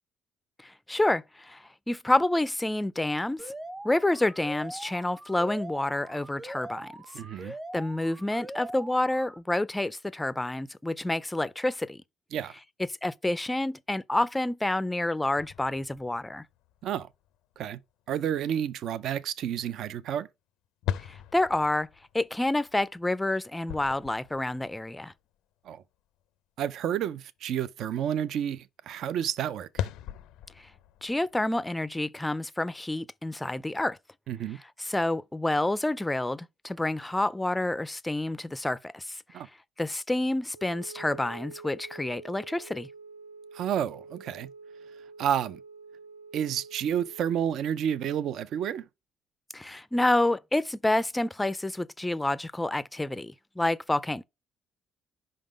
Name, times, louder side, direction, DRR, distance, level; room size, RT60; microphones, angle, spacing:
voice 1, 0.6-3.5 3.8-6.9 7.4-12.0 13.0-16.4 21.0-21.9 22.1-25.1 31.0-34.0 34.8-39.2 39.8-42.9 49.5-54.2, left 1 dB, 10° left, 0.4 m, -28 dB
Alarm, 3.4-9.4, right 1 dB, 20° right, 0.8 m, -42 dB
voice 2, 7.1-7.5 12.3-12.5 16.8-17.1 17.6-17.8 18.1-20.3 25.7-25.8 26.6-29.9 34.3-34.6 39.3-39.5 43.5-44.5 45.2-45.6 46.3-48.9, right 9 dB, 65° right, 0.4 m, -30 dB
sound 1, 15.4-17.9 18.3-18.4 20.8-25.2 25.6-25.7 29.4-31.4, left 10 dB, 90° left, 0.5 m, -39 dB
Wind instrument woodwind instrument, 40.5-47.6, right 4 dB, 85° right, 1.0 m, -47 dB
5.3 x 3.7 x 5.0 m
cardioid pair, 110°, 0 cm